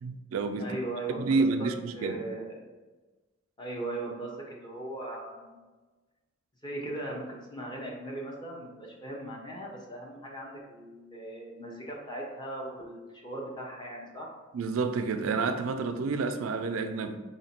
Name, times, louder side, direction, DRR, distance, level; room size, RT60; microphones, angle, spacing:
voice 1, 0.0-0.7 1.2-2.2 14.5-17.2, right 4 dB, 85° right, 0.4 m, -29 dB
voice 2, 0.6-1.7 1.9-2.6 3.6-5.6 6.6-14.3, right 2 dB, 20° left, 0.9 m, -38 dB
3.9 x 2.8 x 4.2 m
head